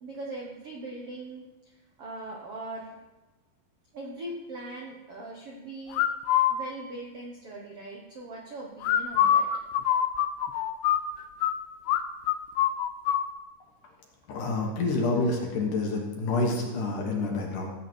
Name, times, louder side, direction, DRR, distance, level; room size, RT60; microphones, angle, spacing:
voice 1, 0.0-1.4 2.0-3.0 3.9-6.1 6.5-9.5, right 2 dB, 65° right, -2 dB, 1.4 m, -40 dB
sound 1, 5.9-6.5 8.8-11.5 11.9-12.0 12.3-13.2, left 10 dB, 85° left, 2.7 m, -24 dB
voice 2, 14.3-17.7, left 3 dB, 60° left, 0 dB, 2.6 m, -28 dB
16.0 x 8.1 x 4.6 m, 1.1 s
omnidirectional pair, 4.8 m